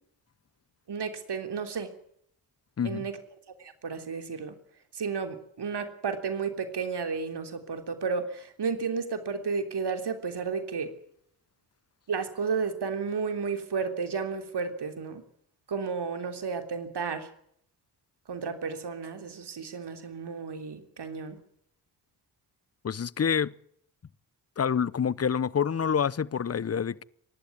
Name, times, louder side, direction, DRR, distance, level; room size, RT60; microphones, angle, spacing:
voice 1, 0.9-1.9 2.8-3.1 3.6-4.5 4.9-10.9 12.1-15.2 15.7-17.3 18.3-21.4, right 5 dB, 60° right, 3.4 m, -32 dB
voice 2, 2.8-3.1 22.8-23.5 24.6-27.0, left 7 dB, 35° left, 0.8 m, -27 dB
25.0 x 11.5 x 9.7 m
supercardioid pair, 50°, 45 cm